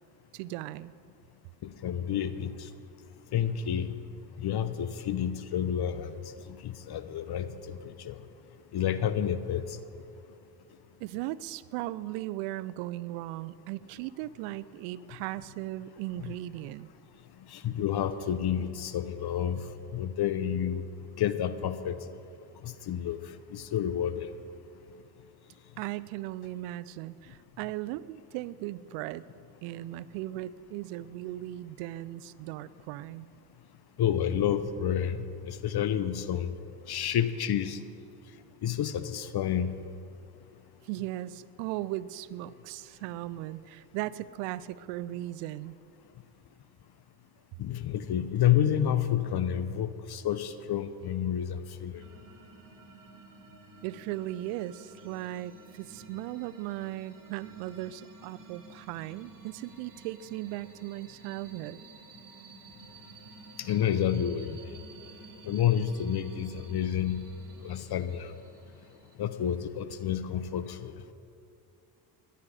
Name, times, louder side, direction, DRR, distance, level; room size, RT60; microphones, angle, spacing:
voice 1, 0.3-0.9 11.0-16.9 25.8-29.2 29.6-33.3 40.8-45.8 53.8-61.8, right 15 dB, 80° right, 18 dB, 0.6 m, -37 dB
voice 2, 1.6-2.7 3.3-3.9 4.4-8.2 8.7-9.8 17.5-20.8 21.2-22.0 22.6-24.3 34.0-35.2 35.4-36.6 36.9-37.8 38.6-39.8 47.6-52.0 63.6-64.8 65.4-67.2 67.6-68.3 69.2-70.9, left 9 dB, 50° left, 12 dB, 0.9 m, -30 dB
sound 1, 51.9-69.2, right 4 dB, 40° right, 2.3 m, -52 dB
17.5 x 11.5 x 4.9 m, 2.7 s
supercardioid pair, 65°, 50 cm